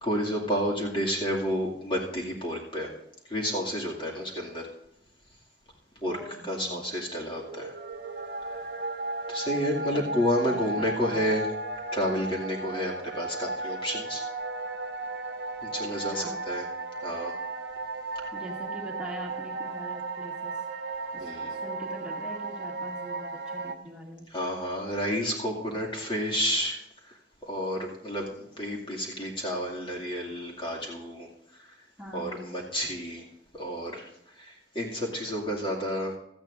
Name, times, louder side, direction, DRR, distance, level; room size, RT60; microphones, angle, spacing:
voice 1, 0.0-2.9 3.3-4.6 6.0-6.2 6.4-7.7 9.3-11.5 11.9-14.2 15.6-16.7 17.0-17.3 21.2-21.6 24.3-26.8 27.5-31.3 32.1-33.2 33.5-34.1 34.4-36.1, equal, 30° left, -3 dB, 2.4 m, -30 dB
voice 2, 6.1-6.8 9.9-11.2 16.1-16.4 18.3-20.5 21.1-24.3 32.0-32.5, equal, 5° right, -3 dB, 2.3 m, -43 dB
sound 1, 7.3-23.8, right 2 dB, 65° right, 1.0 m, -35 dB
17.0 x 13.5 x 2.6 m, 0.81 s
head